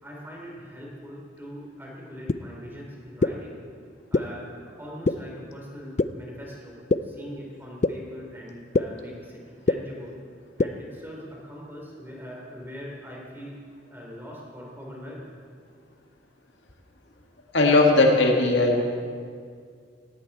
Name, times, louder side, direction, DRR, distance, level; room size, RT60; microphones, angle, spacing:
voice 1, 0.0-3.5 4.1-9.4 9.7-10.1 10.6-13.6 13.8-15.3, equal, 10° right, -3 dB, 3.4 m, -41 dB
sound 1, 2.3-2.4 3.2-3.3 4.1-4.2 5.1-5.2 6.0-6.1 6.9-7.0 7.8-7.9 8.7-8.8 9.7-9.8 10.6-10.7, left 3 dB, 35° left, 0.4 m, -20 dB
voice 2, 17.5-18.8, left 2 dB, 75° left, 1 dB, 2.0 m, -18 dB
17.5 x 16.5 x 4.2 m, 2.1 s
head